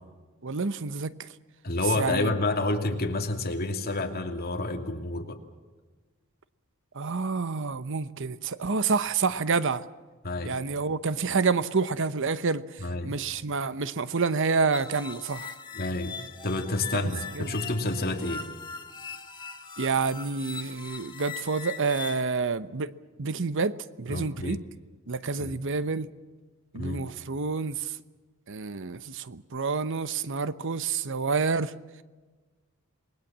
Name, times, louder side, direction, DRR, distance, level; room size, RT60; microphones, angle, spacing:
voice 1, 0.4-1.3 1.9-2.4 6.9-9.8 10.4-15.5 16.9-17.5 19.8-22.9 23.2-24.6 25.1-26.1 26.7-27.9 28.5-31.7, right 4 dB, 60° right, 0.9 m, -28 dB
voice 2, 1.6-5.4 10.2-10.5 12.8-13.2 15.7-16.2 16.4-18.5 24.1-24.6 25.4-25.6 26.7-27.1, left 2 dB, 45° left, 2.6 m, -29 dB
sound 1, 14.7-22.2, left 6 dB, 20° left, 2.2 m, -41 dB
28.0 x 21.0 x 7.4 m
head